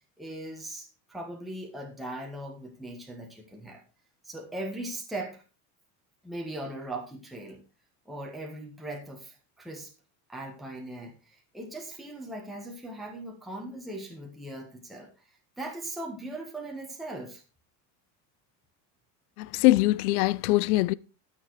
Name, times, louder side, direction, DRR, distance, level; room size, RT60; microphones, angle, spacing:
voice 1, 0.2-3.8 4.2-5.4 6.2-7.6 8.0-9.9 10.3-15.1 15.6-17.4, right 1 dB, ahead, 1.6 m, -39 dB
voice 2, 19.4-20.9, left 18 dB, 65° left, 0.6 m, -22 dB
12.5 x 6.9 x 4.8 m
supercardioid pair, 170°, 48 cm